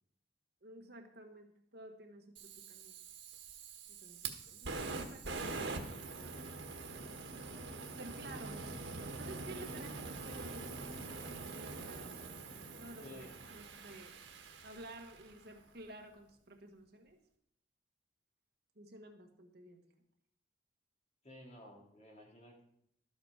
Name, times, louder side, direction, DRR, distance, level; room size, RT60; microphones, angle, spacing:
voice 1, 0.6-2.9 3.9-6.9 8.0-8.9 9.2-11.1 11.5-12.2 12.8-14.2 14.6-17.2 18.7-19.8, right 1 dB, 60° right, 4 dB, 1.5 m, -53 dB
Fire, 2.4-15.5, right 3 dB, 90° right, 1.5 m, -44 dB
voice 2, 13.0-13.3 21.2-22.6, left 1 dB, 40° left, -1 dB, 2.5 m, -53 dB
13.0 x 8.2 x 4.9 m, 0.71 s
head